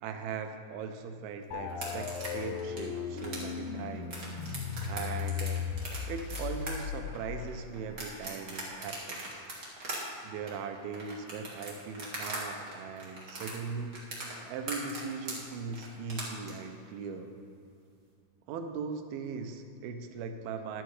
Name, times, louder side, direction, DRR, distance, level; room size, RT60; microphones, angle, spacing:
voice 1, 0.0-4.3 4.9-5.6 6.1-9.4 10.2-14.0 14.5-17.3 18.5-20.8, right 5 dB, 85° right, 6 dB, 2.7 m, -39 dB
sound 1, 1.5-8.2, left 7 dB, 80° left, 2.2 m, -37 dB
sound 2, 1.7-12.4 12.7-16.5, right 2 dB, 35° right, 1.4 m, -40 dB
11.5 x 7.9 x 4.8 m, 2.5 s
omnidirectional pair, 4.3 m